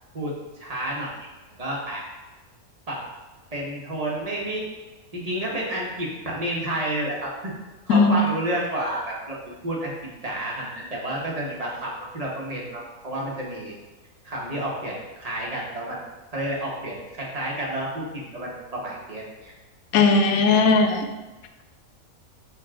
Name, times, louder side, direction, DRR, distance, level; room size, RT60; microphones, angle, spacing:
voice 1, 0.1-1.1 1.6-2.1 2.9-3.0 3.5-4.6 5.1-7.5 7.9-9.4 9.6-9.9 10.2-13.7 14.2-16.0 16.3-19.5 20.5-20.8, right 1 dB, 25° right, -4 dB, 1.3 m, -30 dB
voice 2, 19.9-21.1, left 4 dB, 80° left, 6 dB, 1.0 m, -18 dB
6.5 x 3.9 x 3.7 m, 1.2 s
omnidirectional pair, 1.5 m